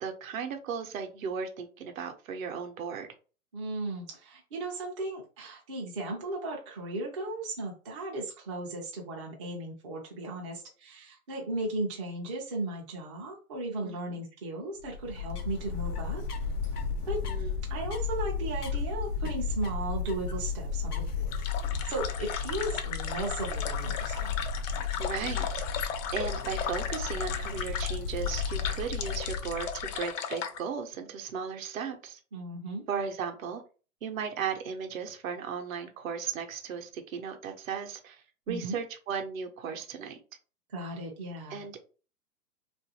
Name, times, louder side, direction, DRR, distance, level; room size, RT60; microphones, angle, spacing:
voice 1, 0.0-3.1 13.8-14.2 17.2-17.6 25.0-25.6 26.1-32.2 32.9-33.6 34.0-38.2 38.5-40.2 41.5-41.8, right 6 dB, 65° right, 5 dB, 0.7 m, -36 dB
voice 2, 3.5-16.2 17.0-17.2 17.7-21.3 21.8-24.3 32.3-32.9 38.5-38.8 40.7-41.6, right 2 dB, 25° right, -2 dB, 0.3 m, -36 dB
sound 1, 14.8-30.0, left 5 dB, 90° left, 0.7 m, -34 dB
sound 2, 21.3-30.6, left 8 dB, 55° left, 0.5 m, -36 dB
2.5 x 2.3 x 2.7 m, 0.36 s
hypercardioid pair, 130°, 44 cm